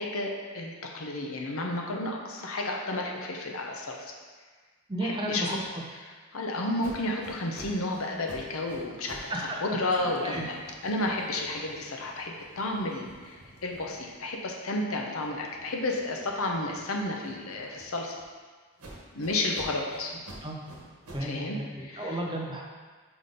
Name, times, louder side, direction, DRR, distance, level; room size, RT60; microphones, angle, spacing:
voice 1, 0.0-4.1 5.0-5.6 6.0-9.3 9.6-10.6 10.8-18.1 19.1-20.1 21.2-22.2, left 2 dB, 75° left, 1 dB, 0.8 m, -32 dB
voice 2, 4.9-5.8 9.3-9.6 9.9-10.4 20.4-20.6 21.1-21.7 22.0-22.6, right 1 dB, 20° right, -1 dB, 0.7 m, -33 dB
sound 1, 6.8-9.4 9.7-14.5 14.9-18.2 18.8-21.4, right 1 dB, 85° right, 1.2 m, -50 dB
4.9 x 4.2 x 5.0 m, 1.5 s
head